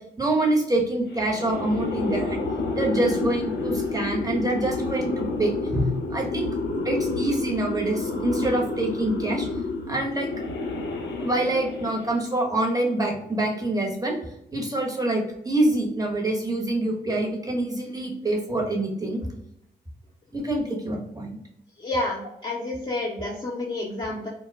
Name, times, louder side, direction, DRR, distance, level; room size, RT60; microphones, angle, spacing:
voice 1, 0.2-2.4 2.7-6.5 6.8-9.5 9.9-10.3 11.2-14.2 14.5-19.2 20.3-21.4 23.2-23.3, right 1 dB, 20° right, 0 dB, 1.0 m, -26 dB
sound 1, 1.1-12.3, left 2 dB, 65° left, 0.5 m, -29 dB
voice 2, 21.8-24.3, left 2 dB, 25° left, -4 dB, 0.7 m, -29 dB
2.2 x 2.1 x 3.2 m, 0.78 s
supercardioid pair, 45°, 20 cm